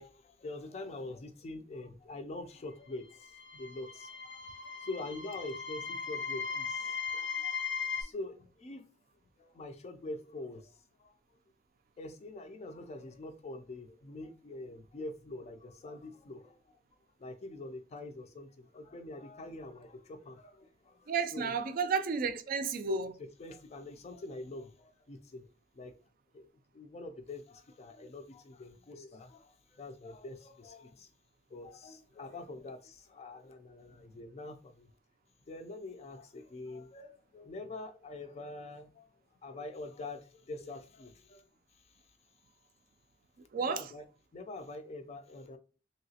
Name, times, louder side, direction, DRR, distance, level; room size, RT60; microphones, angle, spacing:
voice 1, 0.0-7.6 8.0-8.8 9.4-11.2 12.0-16.8 17.2-21.5 23.2-25.5 25.7-25.9 26.3-26.5 26.7-31.1 31.5-34.9 35.5-39.1 39.4-41.4 43.6-44.0 44.3-45.6, left 2 dB, 35° left, 0.4 m, -45 dB
sound 1, 3.1-8.0, left 6 dB, 75° left, 0.6 m, -38 dB
voice 2, 21.1-23.2 43.5-43.9, right 5 dB, 50° right, 0.3 m, -32 dB
3.1 x 2.8 x 2.8 m
head